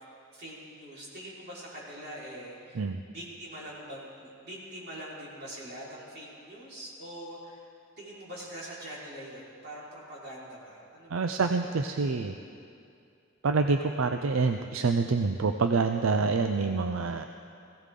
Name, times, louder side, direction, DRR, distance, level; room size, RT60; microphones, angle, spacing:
voice 1, 0.3-7.7 8.0-11.6 12.1-12.2, equal, 50° right, -7 dB, 4.5 m, -44 dB
voice 2, 11.1-12.3 13.4-17.3, right 4 dB, 80° right, 6 dB, 0.5 m, -26 dB
20.0 x 16.0 x 3.8 m, 2.4 s
head